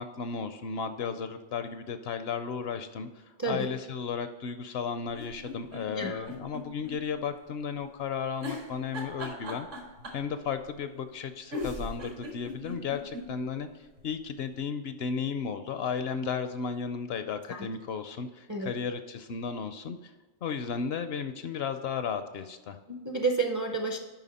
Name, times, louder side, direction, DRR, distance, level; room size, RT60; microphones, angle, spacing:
voice 1, 0.0-9.7 10.1-20.1 20.4-22.8, left 6 dB, 65° left, 9 dB, 0.7 m, -34 dB
sound 1, 5.1-7.0 7.3-7.4 8.4-10.3 11.2-11.3 11.5-13.3 13.7-13.8 14.0-14.1, left 1 dB, 75° right, 2.1 m, -38 dB
voice 2, 22.9-24.0, right 3 dB, 25° right, 4 dB, 0.4 m, -30 dB
9.1 x 5.7 x 4.1 m, 1.2 s
omnidirectional pair, 1.3 m